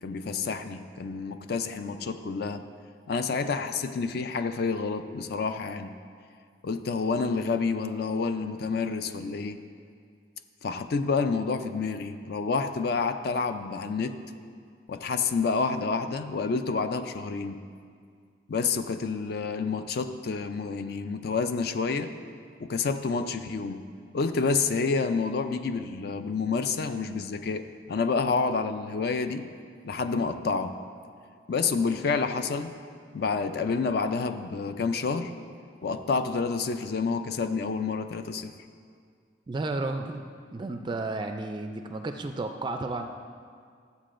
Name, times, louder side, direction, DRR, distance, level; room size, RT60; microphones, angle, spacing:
voice 1, 0.0-2.6 3.1-5.9 6.6-9.6 10.6-14.2 14.9-17.6 18.5-22.1 22.6-23.8 24.1-29.4 29.8-30.7 31.5-32.7 33.1-35.3 35.8-38.5, left 4 dB, 55° left, 9 dB, 0.4 m, -29 dB
voice 2, 39.5-40.2 40.5-43.1, right 2 dB, 25° right, 5 dB, 0.3 m, -32 dB
13.0 x 8.2 x 2.5 m, 2.1 s
head